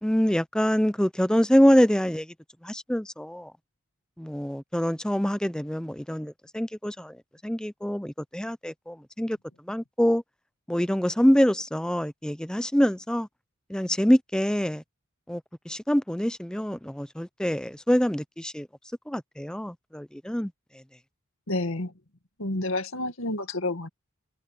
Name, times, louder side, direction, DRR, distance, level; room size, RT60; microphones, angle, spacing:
voice 1, 0.0-2.3 2.6-3.5 4.2-7.2 7.4-9.4 9.7-10.2 10.7-13.3 13.7-14.8 15.3-15.4 15.7-18.7 19.1-20.5, equal, 5° left, 0.6 m, -25 dB
voice 2, 21.5-21.9 22.4-23.9, left 2 dB, 75° left, 2.0 m, -29 dB
head